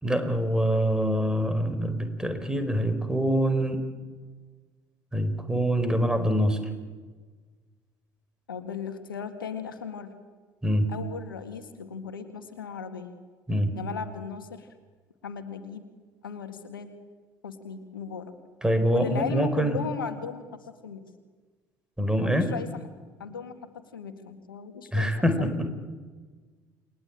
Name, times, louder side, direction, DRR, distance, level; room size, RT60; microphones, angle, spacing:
voice 1, 0.0-3.8 5.1-6.6 10.6-10.9 13.5-13.7 18.6-19.8 22.0-22.5 24.9-25.7, equal, 5° right, 9 dB, 4.7 m, -25 dB
voice 2, 8.5-10.1 10.9-13.1 13.7-14.7 15.2-15.9 16.2-16.9 17.4-18.3 18.9-21.0 22.2-22.7 23.2-25.6, left 6 dB, 80° left, 8 dB, 1.9 m, -36 dB
29.5 x 21.0 x 8.9 m, 1.4 s
figure-of-eight pair, 55°, 11 cm